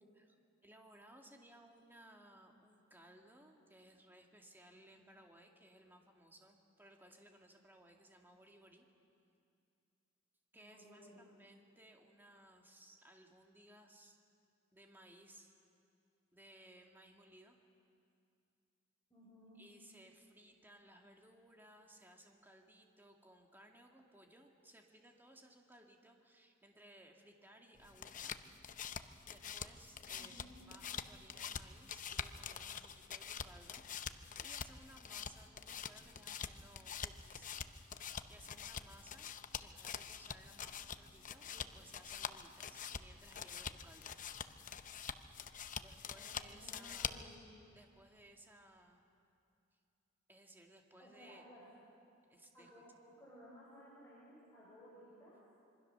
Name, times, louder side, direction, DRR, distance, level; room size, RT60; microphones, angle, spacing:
voice 1, 0.6-8.9 10.5-14.2 14.7-15.5 16.3-17.6 19.6-28.4 28.7-28.8 29.3-37.9 38.3-39.3 39.6-44.7 45.8-47.3 47.7-49.1 49.7-49.8 50.3-51.5 52.3-52.7, right 1 dB, 10° right, 2 dB, 2.1 m, -61 dB
voice 2, 10.5-11.4 19.1-19.6 30.1-30.6 46.1-47.4 51.0-51.6 52.5-52.9 53.2-55.4, equal, 15° left, -9 dB, 6.5 m, -59 dB
sound 1, 27.8-47.4, left 7 dB, 40° left, 0.7 m, -46 dB
26.5 x 23.5 x 6.8 m, 2.5 s
head